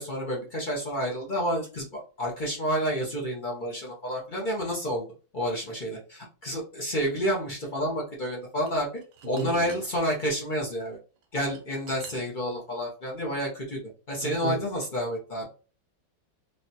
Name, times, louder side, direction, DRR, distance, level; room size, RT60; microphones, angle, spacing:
voice 1, 0.0-5.0 5.3-8.9 9.3-11.0 11.3-13.8 14.1-15.4, equal, 45° left, 0.6 m, -29 dB
sound 1, 8.3-10.5 11.2-12.7, right 7 dB, 70° right, 1.2 m, -48 dB
voice 2, 9.2-9.8 14.2-14.6, right 2 dB, 45° right, 0.6 m, -33 dB
3.3 x 2.7 x 2.7 m
omnidirectional pair, 2.1 m